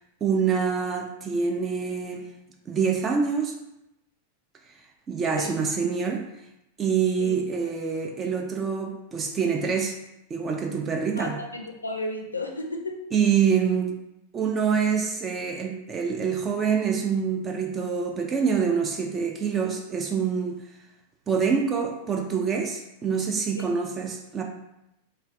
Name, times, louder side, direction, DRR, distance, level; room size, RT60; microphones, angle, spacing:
voice 1, 0.2-2.3 2.7-3.5 5.1-6.2 6.8-9.9 10.3-11.4 13.1-13.9 14.3-20.6 21.3-24.4, right 6 dB, 25° right, 2 dB, 0.3 m, -26 dB
voice 2, 11.2-13.0, left 2 dB, 80° left, 2 dB, 0.4 m, -33 dB
3.2 x 2.2 x 2.5 m, 0.87 s
figure-of-eight pair, 90°, 0 cm